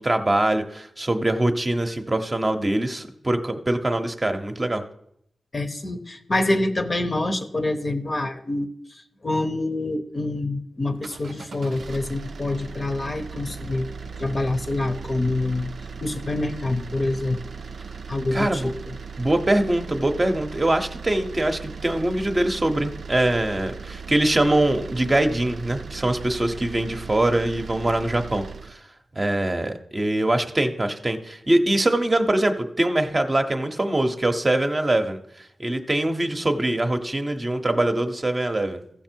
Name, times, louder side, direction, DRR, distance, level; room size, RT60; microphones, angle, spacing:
voice 1, 0.0-4.8 18.3-18.7 19.2-28.8 29.2-38.8, right 1 dB, 25° right, 6 dB, 0.8 m, -23 dB
voice 2, 5.5-13.9 14.2-15.7 16.0-17.4 18.1-18.9, left 2 dB, 35° left, 7 dB, 0.8 m, -26 dB
sound 1, 10.9-28.8, right 5 dB, 70° right, 0.5 m, -38 dB
15.0 x 6.0 x 4.5 m, 0.74 s
wide cardioid pair, 95°, 0 cm